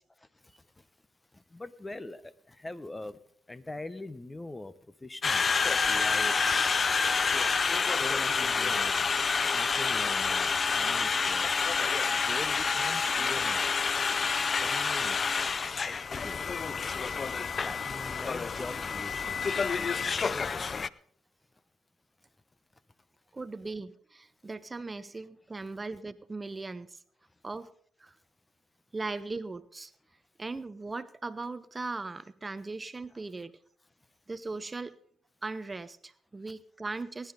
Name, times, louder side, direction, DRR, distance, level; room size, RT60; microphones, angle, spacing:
voice 1, 1.5-3.2 3.5-4.7 5.0-5.5 5.8-6.5 7.2-7.3 8.0-9.1 9.5-11.5 12.1-13.6 14.6-15.2 15.8-16.4 17.6-19.9 20.3-20.6 25.1-25.2, left 2 dB, 20° left, 0.8 m, -43 dB
Conversation, 5.2-20.9, left 5 dB, 40° left, 0.4 m, -28 dB
voice 2, 23.3-27.0 27.4-27.7 28.0-28.1 28.9-29.9 30.4-33.5 34.3-35.0 35.4-37.3, right 3 dB, 25° right, 0.6 m, -38 dB
19.0 x 10.5 x 4.0 m
supercardioid pair, 65°, 0 cm